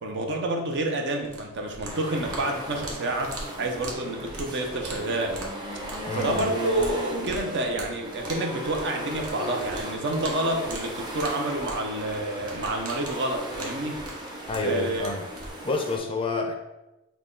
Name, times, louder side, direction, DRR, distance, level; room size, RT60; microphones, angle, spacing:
voice 1, 0.0-5.4 6.1-14.0 14.6-15.1, right 1 dB, 55° right, 3 dB, 0.7 m, -29 dB
sound 1, 1.2-15.5, right 2 dB, 80° right, 1.0 m, -42 dB
sound 2, 1.8-16.0, right 1 dB, 20° right, 0.7 m, -36 dB
voice 2, 6.1-6.5 14.5-15.2 15.6-16.5, left 2 dB, 25° left, 3 dB, 0.4 m, -29 dB
6.1 x 2.2 x 3.7 m, 0.99 s
head